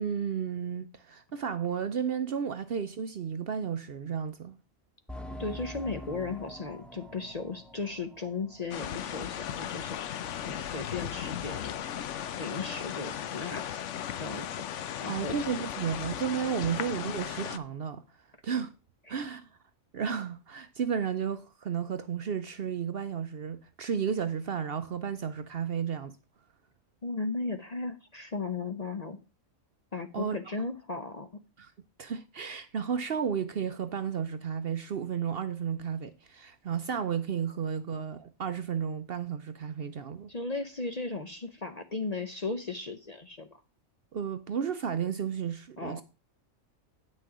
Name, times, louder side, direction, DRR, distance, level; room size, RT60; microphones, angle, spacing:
voice 1, 0.0-4.6 15.1-18.0 18.4-18.7 19.1-19.5 19.9-26.2 30.1-30.6 31.6-31.7 32.0-40.3 44.1-46.0, right 7 dB, 55° right, 0.7 m, -33 dB
sound 1, 5.1-9.4 9.7-9.8 10.3-10.4, left 1 dB, ahead, 0.6 m, -45 dB
voice 2, 5.4-12.0 12.3-13.8 14.1-14.5 14.8-15.4 16.7-16.8 19.1-19.2 27.0-29.2 29.9-31.3 40.3-43.5 45.8-46.0, left 3 dB, 40° left, 0.7 m, -36 dB
sound 2, 8.7-17.6, left 9 dB, 65° left, 0.9 m, -36 dB
9.1 x 6.3 x 4.7 m
omnidirectional pair, 1.4 m